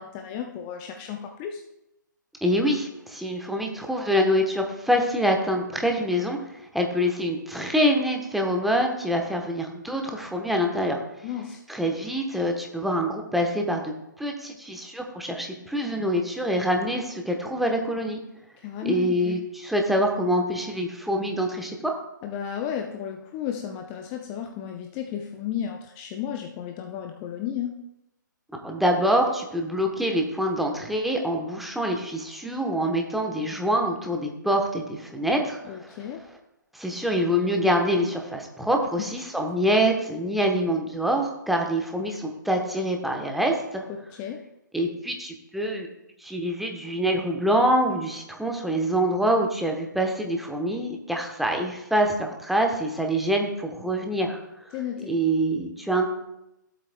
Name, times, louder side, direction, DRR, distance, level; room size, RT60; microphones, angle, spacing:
voice 1, 0.0-1.6 11.2-11.6 18.6-19.4 22.2-27.8 35.6-36.2 39.0-39.1 44.1-44.4 54.7-55.1, left 9 dB, 25° left, 4 dB, 0.6 m, -33 dB
voice 2, 2.4-6.4 6.7-11.0 11.7-13.9 14.2-18.2 18.8-21.9 28.6-36.0 36.7-43.8 44.7-45.9 46.2-54.7 55.1-56.1, equal, ahead, 2 dB, 1.0 m, -25 dB
15.0 x 7.9 x 2.2 m, 0.87 s
figure-of-eight pair, 130°, 11 cm